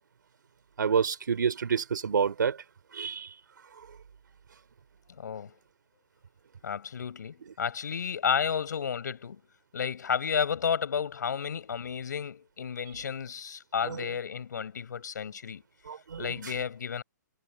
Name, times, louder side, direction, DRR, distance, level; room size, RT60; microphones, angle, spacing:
voice 1, 0.8-2.6 2.9-3.3 13.9-14.0 15.9-16.3, right 6 dB, 85° right, 3.4 m, -28 dB
voice 2, 5.1-5.5 6.6-9.4 9.7-15.6 16.2-17.0, left 7 dB, 70° left, 5.3 m, -32 dB
hypercardioid pair, 170°, 10 cm